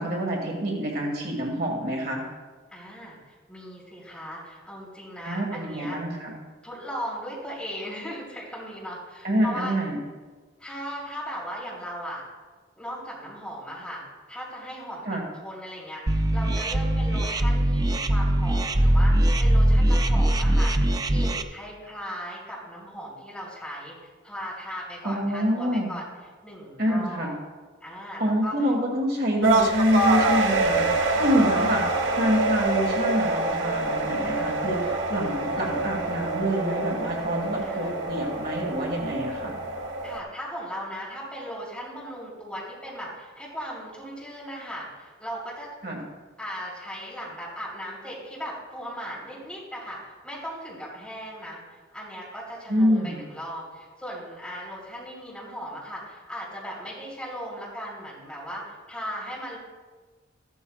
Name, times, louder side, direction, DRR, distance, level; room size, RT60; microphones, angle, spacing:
voice 1, 0.0-2.2 5.2-6.4 9.2-10.0 15.0-15.2 25.0-25.9 26.8-27.3 28.2-39.5 45.8-46.0 52.7-53.2, equal, 50° right, 0 dB, 1.7 m, -26 dB
voice 2, 2.7-6.0 6.6-9.8 10.6-12.2 12.8-14.0 14.3-15.0 15.4-26.1 26.4-27.3 27.8-28.5 31.0-32.0 37.6-38.0 40.0-45.7 46.4-59.6, equal, 5° left, -5 dB, 3.7 m, -38 dB
sound 1, 16.1-21.4, right 1 dB, 20° right, 0.4 m, -21 dB
sound 2, 29.4-40.2, right 2 dB, 80° right, 1.3 m, -26 dB
14.5 x 12.5 x 2.3 m, 1.4 s
head